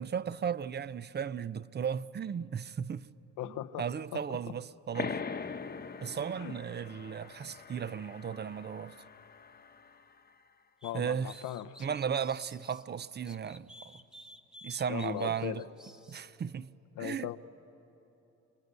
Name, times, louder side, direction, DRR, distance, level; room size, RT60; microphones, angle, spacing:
voice 1, 0.0-3.1 3.4-5.2 6.0-9.0 10.9-11.4 11.8-14.0 14.6-15.6 16.1-16.7 17.0-17.3, right 7 dB, 35° right, 0.5 m, -35 dB
voice 2, 3.4-3.8 4.1-4.2 4.5-4.6 6.4-6.6 10.8-11.7 14.9-15.6 17.0-17.4, left 13 dB, 85° left, 0.8 m, -38 dB
sound 1, 4.9-10.2, left 5 dB, 30° left, 1.0 m, -42 dB
sound 2, 10.8-12.8 13.2-16.2, equal, ahead, 1.3 m, -53 dB
26.5 x 23.0 x 8.1 m
cardioid pair, 90°, 30 cm